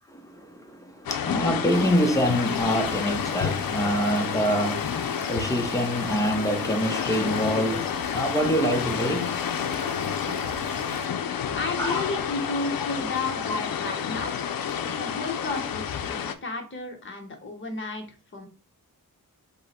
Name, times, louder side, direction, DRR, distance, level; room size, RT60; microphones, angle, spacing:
voice 1, 0.2-9.3 11.8-12.0 12.8-13.0, equal, 10° left, 0.7 m, -26 dB
sound 1, 1.1-16.3, left 8 dB, 80° left, 0.5 m, -30 dB
sound 2, 1.7-11.1, right 6 dB, 80° right, 0.6 m, -42 dB
voice 2, 11.5-14.3 14.8-18.0 18.3-18.5, left 3 dB, 35° left, 1.0 m, -33 dB
5.4 x 2.1 x 4.2 m
wide cardioid pair, 165°, 35 cm